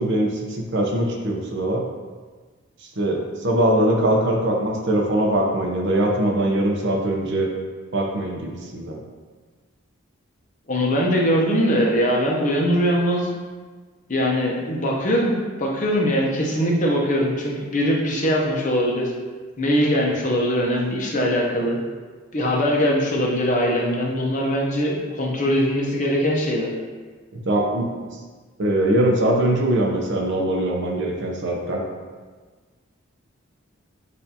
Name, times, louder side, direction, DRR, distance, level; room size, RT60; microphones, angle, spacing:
voice 1, 0.0-1.8 3.0-7.5 7.9-9.0 27.3-27.9 28.6-31.8, right 1 dB, 55° right, 0 dB, 0.7 m, -22 dB
voice 2, 10.7-13.3 14.1-19.1 19.6-21.8 22.3-26.7, equal, 35° left, -2 dB, 0.7 m, -21 dB
6.6 x 2.6 x 2.8 m, 1.4 s
head